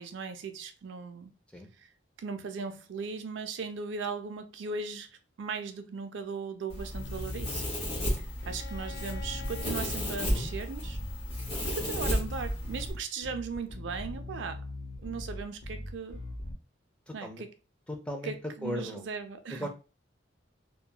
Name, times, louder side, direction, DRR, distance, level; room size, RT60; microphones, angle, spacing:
voice 1, 0.0-1.3 1.8-1.9 2.2-5.1 5.4-7.6 8.2-11.0 11.7-14.7 15.0-16.2 17.1-17.5 18.2-19.7, right 5 dB, 70° right, 0.4 m, -38 dB
Domestic sounds home sounds, 6.7-12.9, equal, 30° left, 1.1 m, -34 dB
Bass guitar, 6.9-16.5, left 1 dB, 80° left, 0.8 m, -41 dB
voice 2, 8.1-8.6 10.3-10.5 17.1-17.4 17.9-18.3 18.6-19.1 19.5-19.7, equal, 5° left, 0.4 m, -38 dB
Bowed string instrument, 8.4-12.2, left 5 dB, 50° left, 0.6 m, -50 dB
2.7 x 2.2 x 2.2 m
head